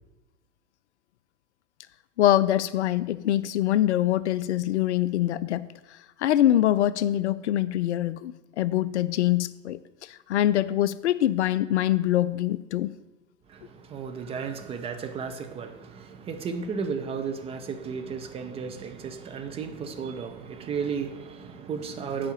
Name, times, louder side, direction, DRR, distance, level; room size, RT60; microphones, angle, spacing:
voice 1, 2.2-5.7 6.2-9.8 10.3-12.9, left 13 dB, 60° left, 0.5 m, -24 dB
voice 2, 13.5-22.3, right 6 dB, 15° right, 0.5 m, -34 dB
8.0 x 5.0 x 6.8 m
figure-of-eight pair, 100°, 39 cm